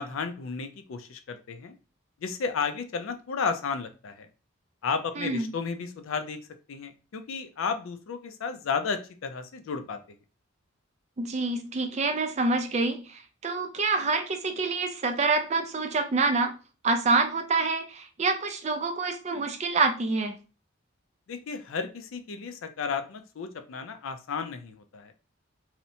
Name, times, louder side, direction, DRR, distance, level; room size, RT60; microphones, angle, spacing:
voice 1, 0.0-1.7 2.2-4.3 4.8-6.4 6.7-10.0 21.3-25.1, left 5 dB, 85° left, 8 dB, 0.4 m, -33 dB
voice 2, 5.2-5.5 11.2-16.5 16.8-20.3, right 3 dB, 35° right, 6 dB, 0.4 m, -27 dB
2.8 x 2.1 x 2.6 m, 0.34 s
head